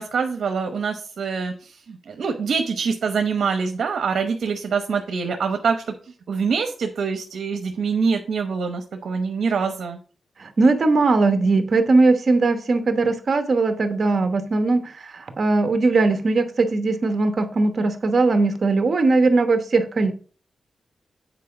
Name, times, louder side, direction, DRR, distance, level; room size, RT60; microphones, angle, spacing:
voice 1, 0.0-5.9 6.3-10.0, right 5 dB, 75° right, 6 dB, 0.9 m, -25 dB
voice 2, 10.4-20.1, right 3 dB, 50° right, 8 dB, 1.0 m, -19 dB
8.3 x 4.6 x 4.9 m, 0.41 s
wide cardioid pair, 130°, 0 cm